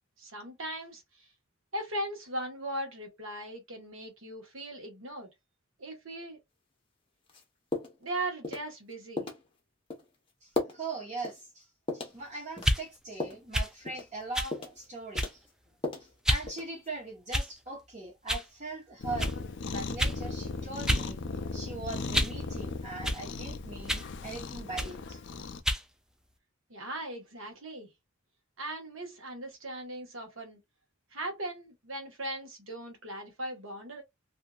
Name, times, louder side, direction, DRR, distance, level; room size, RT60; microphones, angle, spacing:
voice 1, 0.2-1.3 1.7-5.3 5.8-6.4 8.0-9.3 26.7-27.9 28.6-30.6 31.1-34.0, right 1 dB, 75° right, 1.2 m, -38 dB
sound 1, 7.3-7.4 7.7-8.1 8.4-8.7 9.2-9.4 9.9-10.0 10.5-10.8 11.2-11.4 11.9-12.2 12.6-13.4 13.9-14.1 14.5-14.8 15.1-16.1 16.5-16.9, left 2 dB, 25° left, 0.8 m, -35 dB
voice 2, 10.4-11.7 11.9-15.4 16.0-19.3 19.7-21.2 21.5-25.2, right 2 dB, 35° right, 1.0 m, -41 dB
sound 2, 12.6-12.8 13.5-13.7 14.3-14.5 15.1-15.5 16.2-16.5 17.3-17.7 18.3-18.5 19.2-19.4 20.0-20.2 20.9-21.1 21.4-22.4 23.0-23.2 23.9-24.1 24.8-25.0 25.6-25.9, equal, 5° right, 0.3 m, -29 dB
Cat, 19.0-25.6, left 3 dB, 65° left, 0.5 m, -37 dB
2.7 x 2.7 x 2.3 m
head